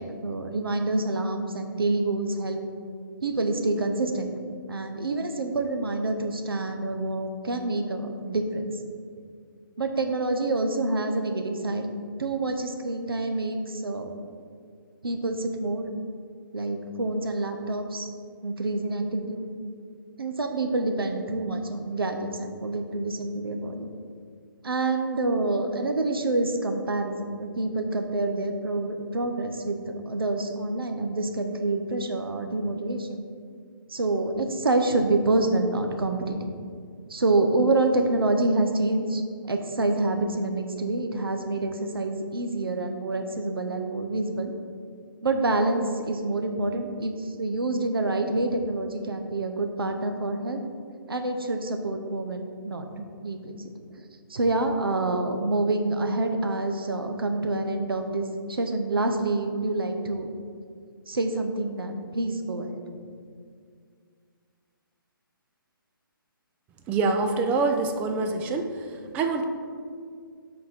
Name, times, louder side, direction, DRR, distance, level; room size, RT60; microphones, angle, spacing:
voice 1, 0.0-2.6 3.2-4.3 4.7-8.7 9.8-11.9 12.2-14.2 15.0-15.9 16.5-18.1 18.4-19.5 20.2-23.9 24.6-33.3 33.9-36.5 37.1-39.2 39.5-44.5 45.2-50.6 51.1-53.7 54.0-54.1 54.3-60.3 61.1-62.8, right 2 dB, 80° right, 5 dB, 0.8 m, -27 dB
voice 2, 66.9-68.7 69.1-69.4, right 3 dB, 10° right, 5 dB, 0.3 m, -25 dB
7.1 x 4.2 x 4.4 m, 2.2 s
figure-of-eight pair, 145°, 12 cm